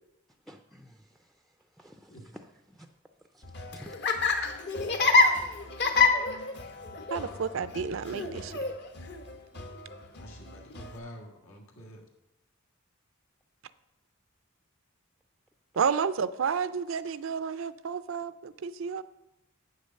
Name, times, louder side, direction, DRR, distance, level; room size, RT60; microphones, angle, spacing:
voice 1, 0.5-1.0 1.8-2.5 2.8-2.9 3.3-4.0, equal, ahead, 6 dB, 0.4 m, -50 dB
Laughter, 3.4-11.0, left 4 dB, 55° left, 1.0 m, -28 dB
voice 2, 7.1-8.6 15.8-19.0, right 6 dB, 65° right, 15 dB, 0.4 m, -31 dB
voice 3, 10.2-12.0, equal, 90° left, 0 dB, 1.8 m, -47 dB
8.3 x 6.5 x 6.4 m, 0.90 s
head